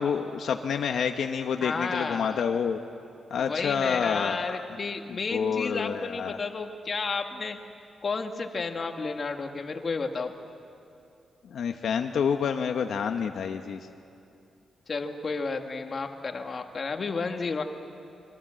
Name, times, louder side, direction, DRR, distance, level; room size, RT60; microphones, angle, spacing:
voice 1, 0.0-2.8 3.3-4.6 5.1-6.4 11.5-13.9, left 7 dB, 65° left, 5 dB, 1.0 m, -28 dB
voice 2, 1.6-2.5 3.4-7.6 8.0-10.3 14.9-17.6, left 4 dB, 35° left, 5 dB, 1.5 m, -32 dB
26.5 x 23.5 x 7.6 m, 2.7 s
wide cardioid pair, 160°, 0 cm